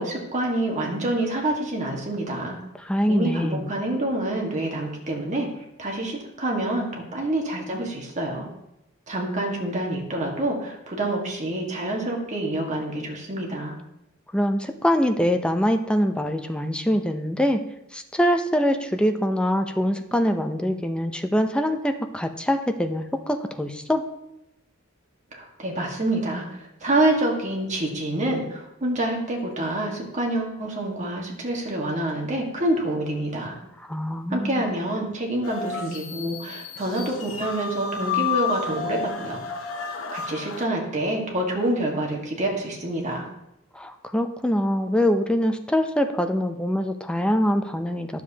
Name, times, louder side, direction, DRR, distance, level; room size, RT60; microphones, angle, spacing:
voice 1, 0.0-2.6 3.1-5.5 5.8-8.5 9.1-13.7 25.3-33.5 34.3-39.4 40.1-43.3, right 1 dB, 35° right, 0 dB, 1.6 m, -27 dB
voice 2, 2.8-3.7 14.3-17.6 17.9-24.0 33.8-34.6 43.7-48.2, equal, 5° left, 6 dB, 0.5 m, -24 dB
sound 1, 35.4-40.6, left 6 dB, 65° left, 0.8 m, -31 dB
10.5 x 7.2 x 2.8 m, 0.86 s
head